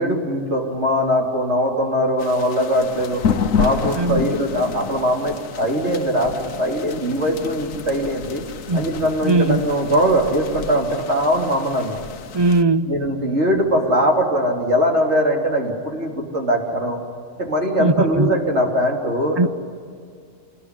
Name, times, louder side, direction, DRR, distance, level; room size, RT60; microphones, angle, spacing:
voice 1, 0.0-3.2 3.5-8.4 8.7-12.0 12.9-17.0 17.4-19.5, equal, 60° right, 0 dB, 3.7 m, -21 dB
sound 1, 2.2-12.6, left 6 dB, 80° left, 1.3 m, -29 dB
voice 2, 3.9-4.4 8.7-8.8 9.2-9.6 12.3-12.9 17.8-18.3 19.4-19.5, right 2 dB, 30° right, 11 dB, 0.5 m, -19 dB
27.0 x 20.5 x 9.9 m, 2.1 s
omnidirectional pair, 1.4 m